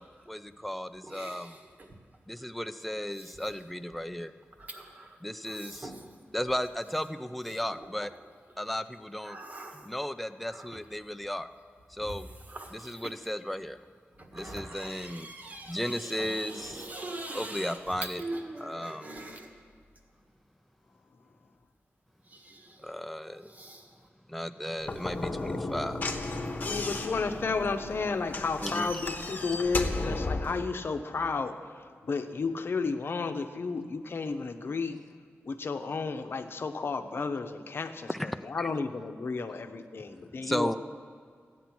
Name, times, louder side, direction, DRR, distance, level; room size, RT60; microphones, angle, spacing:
voice 1, 0.3-1.6 2.3-4.3 5.2-5.9 6.3-8.1 8.6-9.4 9.9-11.5 11.9-12.3 12.9-13.8 14.3-15.3 15.7-16.8 17.3-18.2 18.6-19.1 22.8-23.5 24.3-26.0 28.6-28.9 38.1-38.7 40.4-40.8, equal, ahead, 9 dB, 0.4 m, -35 dB
voice 2, 1.0-2.0 2.4-2.8 3.1-3.6 4.5-6.2 7.5-8.1 8.5-8.8 9.2-9.9 10.5-10.8 12.0-13.3 14.2-19.5 22.2-23.0 23.3-24.1, right 2 dB, 35° right, 2 dB, 1.5 m, -44 dB
Slam / Knock, 24.8-30.6, left 2 dB, 40° left, 1.0 m, -34 dB
voice 3, 26.6-35.0 35.5-40.8, left 4 dB, 55° left, 7 dB, 0.8 m, -32 dB
14.5 x 9.3 x 6.0 m, 2.1 s
wide cardioid pair, 140°, 5 cm